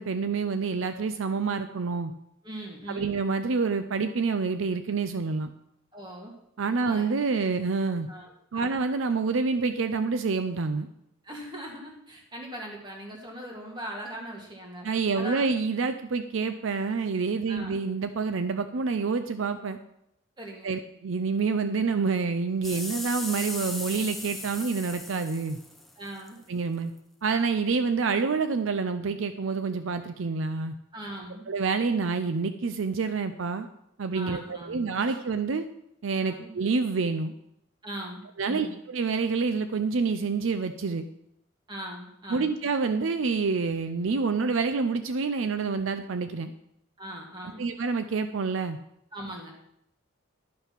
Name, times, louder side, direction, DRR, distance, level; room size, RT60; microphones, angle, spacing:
voice 1, 0.0-2.1 2.9-5.5 6.6-8.1 8.5-10.9 14.8-19.8 20.6-25.6 26.5-26.9 27.2-30.7 31.5-33.7 34.0-35.6 36.0-37.3 38.4-41.0 42.3-46.5 47.4-48.8, right 4 dB, 70° right, 10 dB, 0.5 m, -27 dB
voice 2, 2.4-3.2 5.9-6.3 6.9-7.1 8.1-8.8 11.2-14.9 15.1-15.5 17.5-17.8 20.4-20.7 26.0-26.4 30.9-31.4 34.1-34.8 36.2-36.5 37.8-38.8 41.7-42.5 47.0-47.6 49.1-49.5, right 1 dB, 20° right, 0 dB, 2.0 m, -40 dB
sound 1, 22.6-26.3 27.0-27.1, left 1 dB, ahead, 0.7 m, -37 dB
11.5 x 5.7 x 5.9 m, 0.76 s
head